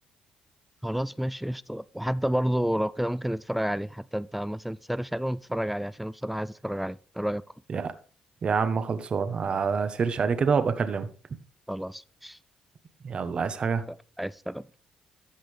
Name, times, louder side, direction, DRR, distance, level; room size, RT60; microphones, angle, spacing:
voice 1, 0.8-7.4 11.7-12.4 13.9-14.7, equal, 5° right, 0.4 m, -30 dB
voice 2, 8.4-11.1 13.0-13.8, right 5 dB, 50° right, 1.1 m, -26 dB
14.0 x 5.9 x 3.3 m
supercardioid pair, 70°, 2 cm